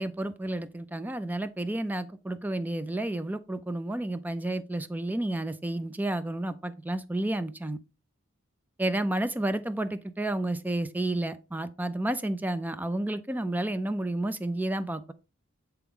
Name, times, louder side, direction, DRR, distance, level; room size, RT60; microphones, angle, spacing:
voice 1, 0.0-7.8 8.8-15.1, right 1 dB, 10° right, 0.3 m, -31 dB
8.1 x 3.4 x 3.6 m
head